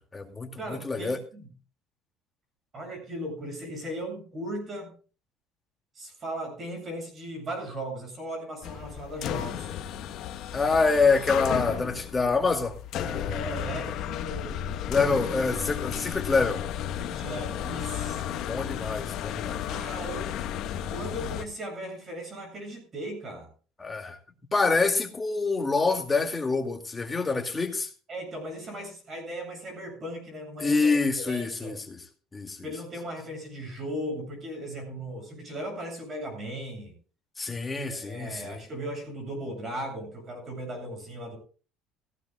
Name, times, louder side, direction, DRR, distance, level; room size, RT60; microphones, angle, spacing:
voice 1, 0.0-1.2 10.5-13.6 14.9-16.6 18.5-19.6 23.8-24.2 24.5-27.9 30.6-32.0 32.3-32.6 37.4-38.6, left 4 dB, 15° left, 2.4 m, -26 dB
voice 2, 0.6-1.4 2.7-4.9 5.9-9.8 13.1-14.7 17.0-18.5 19.6-20.5 20.9-23.5 28.1-30.9 31.2-31.7 32.6-36.9 37.9-41.4, right 1 dB, 30° right, 7.8 m, -37 dB
sound 1, 8.6-21.4, left 10 dB, 55° left, 1.3 m, -33 dB
17.0 x 16.0 x 2.4 m
cardioid pair, 140°, 0 cm